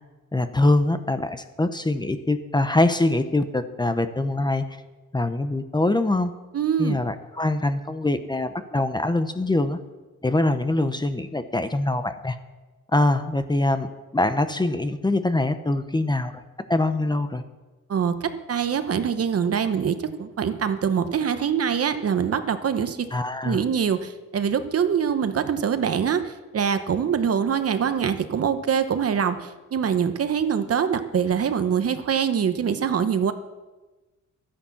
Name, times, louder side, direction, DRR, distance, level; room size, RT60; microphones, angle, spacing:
voice 1, 0.3-4.7 5.1-6.3 6.8-9.8 10.2-12.4 12.9-13.9 14.1-16.4 16.7-17.4 23.1-23.6, left 2 dB, 15° left, 9 dB, 0.8 m, -23 dB
voice 2, 6.5-7.0 17.9-23.1 23.4-33.3, right 7 dB, 50° right, 10 dB, 1.0 m, -24 dB
12.5 x 10.5 x 7.2 m, 1.2 s
cardioid pair, 115°, 32 cm